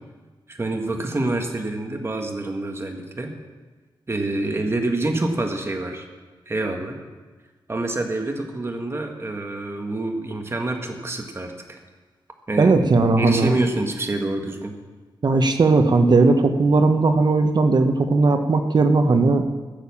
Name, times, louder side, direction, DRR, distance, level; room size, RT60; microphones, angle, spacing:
voice 1, 0.5-3.3 4.1-6.1 6.5-7.0 7.7-11.8 12.5-12.7 13.2-14.8, right 2 dB, 30° right, 3 dB, 1.6 m, -27 dB
voice 2, 12.6-13.6 15.2-19.4, right 3 dB, 50° right, 6 dB, 1.1 m, -17 dB
15.5 x 7.0 x 7.1 m, 1.3 s
wide cardioid pair, 100°, 9 cm